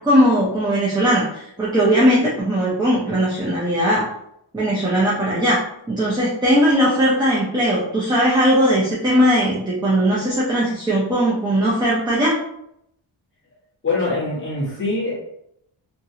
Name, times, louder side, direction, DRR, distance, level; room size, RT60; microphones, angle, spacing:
voice 1, 0.0-4.1 4.5-5.6 5.9-12.4, equal, 10° right, -7 dB, 0.5 m, -18 dB
voice 2, 13.8-15.1, left 3 dB, 25° left, -7 dB, 1.2 m, -23 dB
2.9 x 2.7 x 2.7 m, 0.77 s
wide cardioid pair, 175°, 48 cm